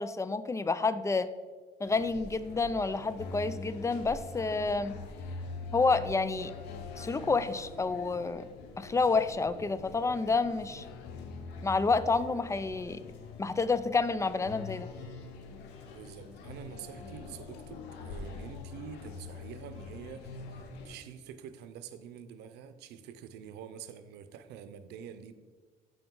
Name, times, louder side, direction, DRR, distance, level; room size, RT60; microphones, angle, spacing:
voice 1, 0.0-1.3 1.8-4.9 5.7-6.5 7.0-8.4 8.8-10.8 11.6-13.0 13.4-14.9, left 4 dB, 15° left, 14 dB, 0.4 m, -29 dB
sound 1, 1.8-21.0, left 4 dB, 90° left, 1.1 m, -44 dB
voice 2, 10.7-11.0 15.9-25.3, right 8 dB, 85° right, 11 dB, 0.7 m, -47 dB
13.5 x 5.0 x 3.8 m, 1.5 s
cardioid pair, 110°, 17 cm